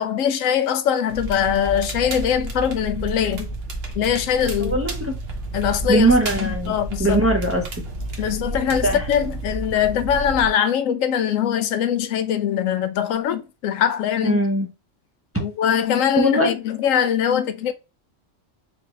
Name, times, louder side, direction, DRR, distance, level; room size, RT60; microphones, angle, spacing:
voice 1, 0.0-3.5 4.0-4.7 5.5-6.1 6.4-7.2 8.2-14.4 15.4-17.7, left 9 dB, 90° left, 1.0 m, -22 dB
Crackle, 1.1-10.5, right 2 dB, 55° right, 1.1 m, -30 dB
voice 2, 4.6-5.1 5.9-6.7 7.0-7.6 8.8-9.0 14.2-14.7 16.1-16.5, right 1 dB, 15° right, 0.5 m, -20 dB
4.6 x 2.9 x 3.1 m
omnidirectional pair, 1.3 m